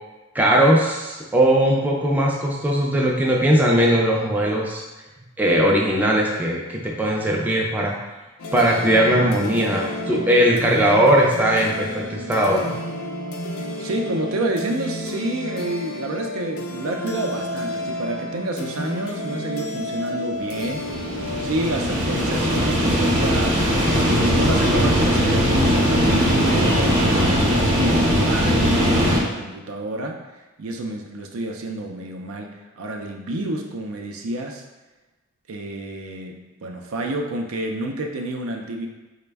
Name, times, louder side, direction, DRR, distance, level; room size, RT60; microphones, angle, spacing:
voice 1, 0.3-4.8 5.4-8.0 8.5-12.7, right 1 dB, 10° right, -2 dB, 0.4 m, -19 dB
sound 1, 8.4-25.0, left 1 dB, 90° left, 0.5 m, -32 dB
voice 2, 13.8-20.9 21.4-23.7 24.0-30.3 30.6-34.6 35.5-38.9, right 2 dB, 80° right, 2 dB, 0.5 m, -29 dB
sound 2, 20.6-29.2, equal, 40° right, 0.8 m, -19 dB
4.1 x 2.1 x 3.3 m, 1.1 s
head